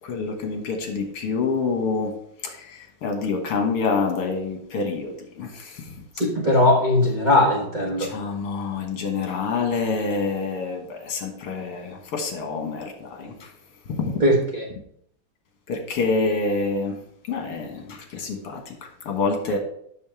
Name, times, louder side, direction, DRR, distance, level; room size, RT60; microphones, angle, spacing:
voice 1, 0.0-6.3 8.0-13.5 13.9-14.2 15.7-17.0 17.3-19.6, left 4 dB, 85° left, 3 dB, 2.3 m, -27 dB
voice 2, 6.2-8.1 14.2-14.6, left 1 dB, 25° right, -2 dB, 1.0 m, -19 dB
7.5 x 6.3 x 4.7 m, 0.70 s
omnidirectional pair, 2.4 m